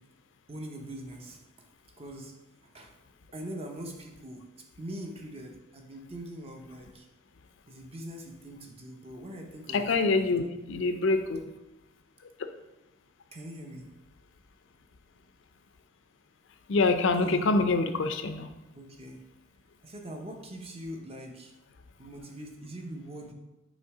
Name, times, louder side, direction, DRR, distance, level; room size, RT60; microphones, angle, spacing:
voice 1, 0.5-1.7 2.0-2.3 2.7-2.9 3.3-4.4 4.8-7.1 7.7-10.3 13.3-13.9 17.2-17.7 18.7-19.2 19.8-21.5 22.0-23.3, right 1 dB, 30° right, 2 dB, 0.7 m, -42 dB
voice 2, 9.7-11.5 16.7-18.5, left 3 dB, 65° left, 8 dB, 0.5 m, -25 dB
6.5 x 3.1 x 4.7 m, 1.0 s
head